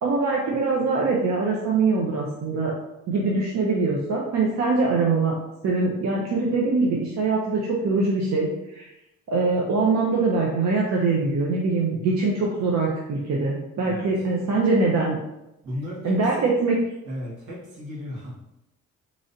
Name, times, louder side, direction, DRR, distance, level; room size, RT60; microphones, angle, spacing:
voice 1, 0.0-2.7 3.1-5.4 5.6-8.9 9.3-15.2 16.0-16.8, right 3 dB, 65° right, -3 dB, 0.7 m, -23 dB
voice 2, 15.6-16.5 17.0-18.3, equal, 85° right, -6 dB, 1.5 m, -35 dB
3.8 x 3.1 x 2.6 m, 0.90 s
cardioid pair, 90°, 30 cm